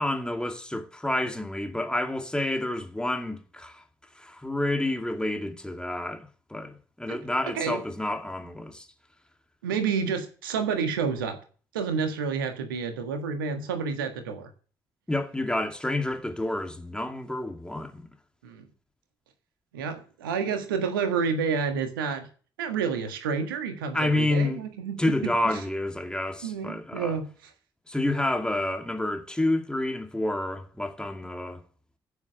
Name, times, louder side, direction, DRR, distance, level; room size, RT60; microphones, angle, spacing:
voice 1, 0.0-3.8 4.2-8.9 15.1-18.1 23.9-24.6 25.0-27.2 27.9-31.6, left 1 dB, 10° left, 2.5 m, -29 dB
voice 2, 9.6-11.4 11.7-14.5 18.4-18.6 19.7-22.3 22.6-25.6 26.4-27.3, right 6 dB, 75° right, 1.6 m, -29 dB
15.0 x 7.1 x 6.7 m
figure-of-eight pair, 40°, 11 cm